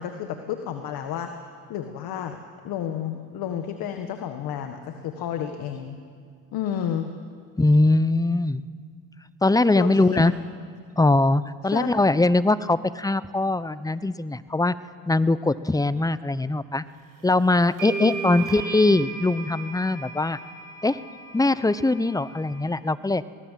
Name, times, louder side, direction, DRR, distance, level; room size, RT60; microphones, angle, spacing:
voice 1, 0.0-1.3 1.7-2.4 2.6-6.0 6.5-7.1 9.7-10.3 11.6-11.9 18.0-18.2, left 9 dB, 80° left, 6 dB, 1.6 m, -31 dB
voice 2, 7.6-8.6 9.4-10.3 11.0-14.7 15.1-16.8 17.2-20.4 20.8-21.0 21.3-23.2, left 2 dB, 10° left, 16 dB, 0.8 m, -21 dB
sound 1, 17.2-17.3 17.8-22.6, right 4 dB, 65° right, 7.6 m, -36 dB
25.0 x 19.0 x 7.5 m, 2.3 s
supercardioid pair, 75°, 35 cm